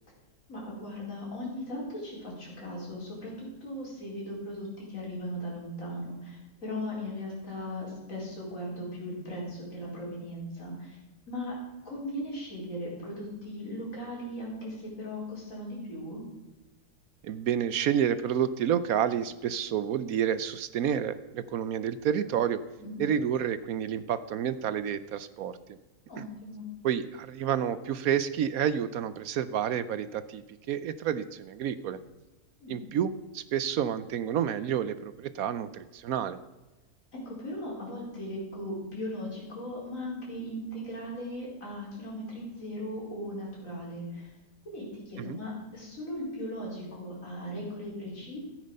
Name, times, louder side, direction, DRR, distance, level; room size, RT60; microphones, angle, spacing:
voice 1, 0.5-11.0 11.3-11.5 11.8-16.2 22.8-23.1 26.1-26.6 32.6-32.8 37.1-44.3 44.6-48.4, left 1 dB, 55° left, -4 dB, 4.9 m, -38 dB
voice 2, 17.2-22.6 23.0-25.6 26.2-26.3 26.8-30.4 30.7-32.0 32.7-36.4 45.2-45.4, right 9 dB, 70° right, 14 dB, 1.0 m, -29 dB
13.0 x 9.4 x 5.4 m, 1.1 s
omnidirectional pair, 1.7 m